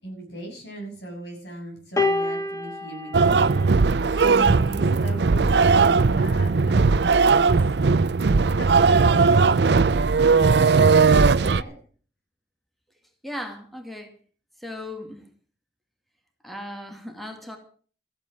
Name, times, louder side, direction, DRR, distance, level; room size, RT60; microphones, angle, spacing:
voice 1, 0.0-7.5 8.4-9.8 10.6-11.8, right 1 dB, 85° left, 2 dB, 6.9 m, -38 dB
sound 1, 2.0-4.4 5.5-5.6, left 2 dB, 20° left, 1.5 m, -28 dB
sound 2, 3.1-11.6, right 4 dB, 70° right, 0.5 m, -18 dB
voice 2, 13.2-14.1 14.6-15.2 16.4-17.6, left 1 dB, ahead, 3 dB, 2.3 m, -36 dB
15.0 x 9.0 x 7.3 m, 0.43 s
head